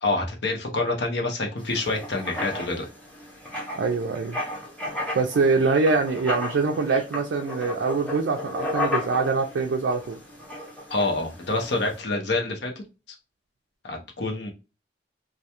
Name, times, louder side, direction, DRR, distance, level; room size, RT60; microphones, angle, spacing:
voice 1, 0.0-2.8 10.9-12.7 13.8-14.5, left 2 dB, 65° left, 2 dB, 0.7 m, -27 dB
Writing, 1.6-12.0, left 1 dB, 5° left, 0.6 m, -34 dB
voice 2, 3.8-4.4 5.1-10.2, right 4 dB, 70° right, 2 dB, 0.3 m, -24 dB
2.3 x 2.2 x 2.8 m, 0.30 s
head